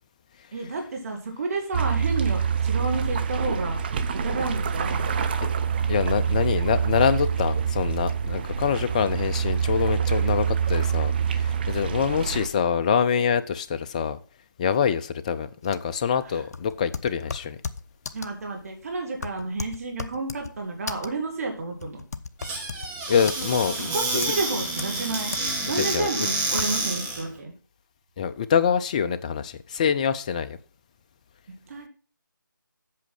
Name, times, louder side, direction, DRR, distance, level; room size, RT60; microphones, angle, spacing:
voice 1, 0.5-3.8 4.2-5.3 18.1-22.0 23.8-25.4 25.7-27.5 31.7-31.9, right 3 dB, 45° right, 2.5 m, -31 dB
sound 1, 1.7-12.5, right 7 dB, 30° right, 0.6 m, -26 dB
voice 2, 5.9-14.2 14.6-17.6 23.1-23.9 25.8-26.1 28.2-30.6, left 7 dB, 20° left, 0.4 m, -25 dB
sound 2, 15.6-26.9, left 4 dB, 50° left, 0.7 m, -37 dB
Squeak / Cupboard open or close, 22.4-27.3, right 2 dB, 10° right, 1.5 m, -29 dB
8.3 x 6.2 x 6.0 m
figure-of-eight pair, 155°, 11 cm